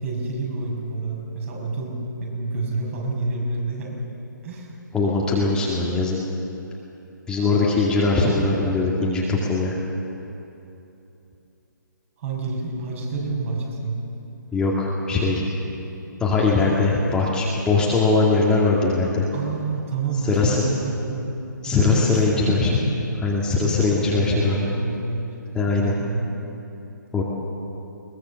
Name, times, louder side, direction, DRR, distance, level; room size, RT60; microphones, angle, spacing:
voice 1, 0.0-4.0 4.4-4.7 12.2-14.0 19.3-21.3 21.6-22.7 23.6-25.3 25.7-26.2, right 3 dB, 40° right, -2 dB, 6.4 m, -28 dB
voice 2, 4.9-6.2 7.3-9.8 14.5-15.4 16.2-19.2 20.3-20.6 21.6-22.8 23.2-24.6 25.5-25.9 27.1-27.2, left 3 dB, 10° left, -5 dB, 2.2 m, -21 dB
22.0 x 20.5 x 7.1 m, 2.9 s
figure-of-eight pair, 140°, 11 cm